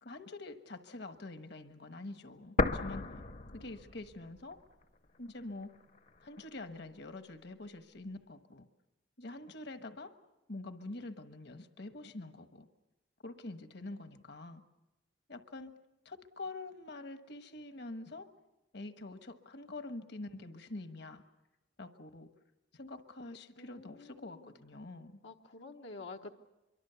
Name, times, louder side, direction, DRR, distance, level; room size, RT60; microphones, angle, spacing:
voice 1, 0.0-3.0 3.5-4.6 5.2-5.7 6.2-8.7 9.2-10.1 10.5-12.7 13.2-14.6 15.3-15.7 16.0-18.3 18.7-21.2 21.8-22.3 22.7-25.2, left 2 dB, 65° left, 8 dB, 1.3 m, -46 dB
sound 1, 2.6-4.5 4.8-4.9 5.6-6.6, left 3 dB, 45° left, 0.8 m, -34 dB
voice 2, 23.6-24.5 25.2-26.3, left 3 dB, 90° left, 2 dB, 1.1 m, -49 dB
25.0 x 23.5 x 6.9 m, 1.0 s
head